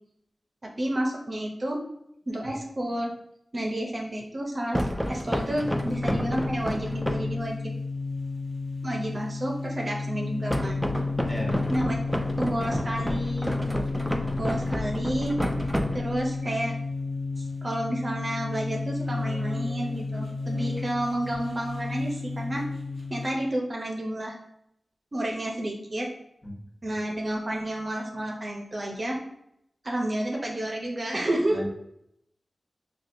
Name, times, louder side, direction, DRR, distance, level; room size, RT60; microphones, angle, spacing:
voice 1, 0.6-1.8 2.3-3.1 3.5-7.7 8.8-10.9 11.7-12.0 12.4-13.5 14.4-15.4 15.9-16.7 17.4-22.7 23.1-24.4 25.1-26.1 26.8-29.2 29.8-31.6, right 1 dB, 45° right, 0 dB, 0.6 m, -30 dB
sound 1, 4.7-7.4 10.5-16.4, equal, ahead, 0.3 m, -30 dB
sound 2, 5.1-23.4, left 3 dB, 85° left, 1.0 m, -32 dB
voice 2, 11.3-11.6 13.8-13.9 26.4-26.6 26.9-27.0 31.5-31.7, equal, 20° left, -3 dB, 1.0 m, -35 dB
4.2 x 2.3 x 2.6 m, 0.76 s
cardioid pair, 55°, 0 cm